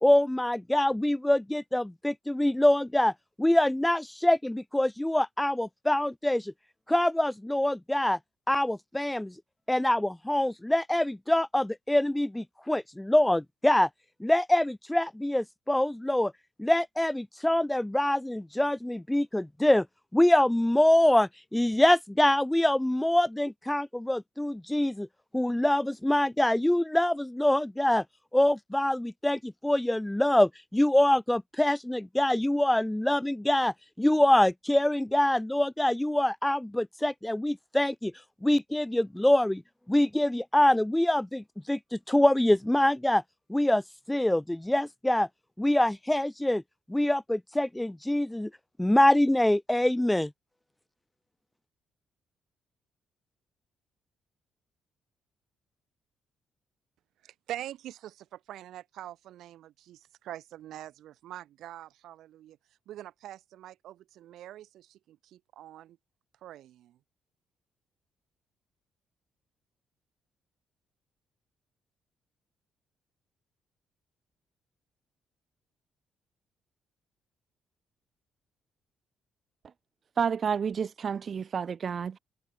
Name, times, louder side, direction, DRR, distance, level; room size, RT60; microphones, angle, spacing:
voice 1, 0.0-3.1 3.4-6.5 6.9-8.2 8.5-9.3 9.7-13.9 14.2-16.3 16.6-19.9 20.1-25.1 25.3-28.0 28.3-38.1 38.4-39.6 39.9-43.2 43.5-43.8 44.1-45.3 45.6-46.6 46.9-48.5 48.8-50.3, left 1 dB, 5° left, 1.1 m, -25 dB
voice 2, 57.2-62.6 62.9-66.0 66.4-67.0, right 12 dB, 80° right, 1.9 m, -44 dB
voice 3, 80.2-82.2, right 6 dB, 50° right, 1.0 m, -30 dB
cardioid pair, 90°, 0 cm